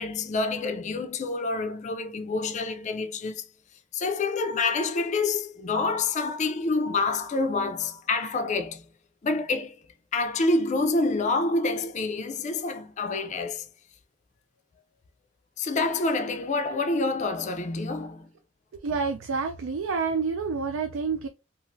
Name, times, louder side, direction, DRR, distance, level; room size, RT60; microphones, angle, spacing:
voice 1, 0.0-3.5 3.9-8.8 9.2-9.8 10.1-13.7 15.6-18.3, left 3 dB, 35° left, 0.4 m, -27 dB
voice 2, 18.8-21.3, right 5 dB, 90° right, 0.4 m, -28 dB
3.0 x 2.4 x 2.5 m
head